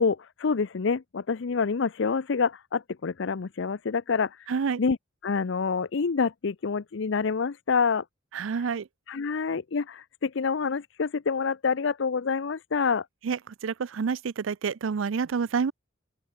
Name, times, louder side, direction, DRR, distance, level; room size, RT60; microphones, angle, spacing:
voice 1, 0.0-4.5 4.8-5.0 5.2-8.0 9.1-13.0, left 5 dB, 65° left, 0.6 m, -27 dB
voice 2, 4.5-4.8 8.3-8.9 13.2-15.7, right 5 dB, 80° right, 0.5 m, -28 dB
open air
head